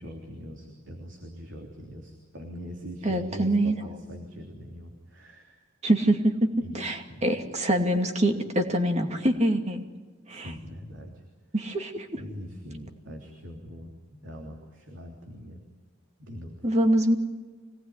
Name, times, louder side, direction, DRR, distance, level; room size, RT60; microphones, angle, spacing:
voice 1, 0.0-5.6 6.6-6.8 7.1-7.3 10.3-11.2 12.1-15.6 16.2-16.5, equal, 70° right, 1 dB, 3.3 m, -42 dB
voice 2, 3.0-3.8 5.8-9.8 10.3-10.5 11.5-12.2 16.6-17.2, right 1 dB, 35° right, 4 dB, 2.5 m, -24 dB
25.0 x 19.0 x 9.8 m, 1.3 s
head